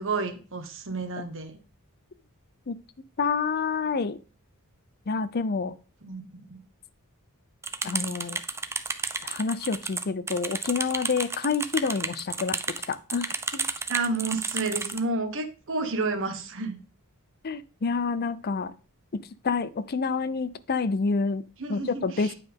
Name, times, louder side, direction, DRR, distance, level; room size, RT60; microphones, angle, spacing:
voice 1, 0.0-1.6 6.0-6.2 6.5-6.6 13.9-16.8 21.6-22.3, right 3 dB, 60° right, 1.3 m, -30 dB
voice 2, 3.2-4.2 5.1-5.7 7.8-8.4 9.2-12.6 12.9-13.7 17.4-18.7 19.1-21.4 21.7-22.3, left 4 dB, 45° left, 0.5 m, -28 dB
sound 1, 7.6-15.0, right 4 dB, 10° right, 0.6 m, -32 dB
9.3 x 5.4 x 3.7 m
head